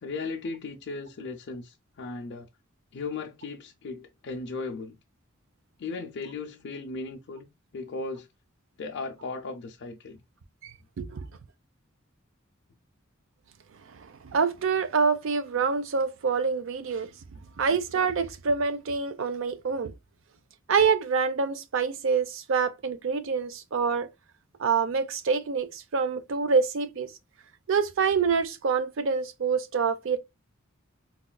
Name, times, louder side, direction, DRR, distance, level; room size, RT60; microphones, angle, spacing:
voice 1, 0.0-2.5 2.9-5.0 5.8-7.5 7.7-8.3 8.8-10.2 15.5-15.6 17.6-17.7, left 3 dB, 60° left, 0.5 m, -36 dB
voice 2, 10.6-11.3 13.9-17.1 17.6-19.9 20.7-24.1 24.6-27.1 27.7-30.2, right 5 dB, 65° right, 0.5 m, -26 dB
4.0 x 2.3 x 2.2 m
head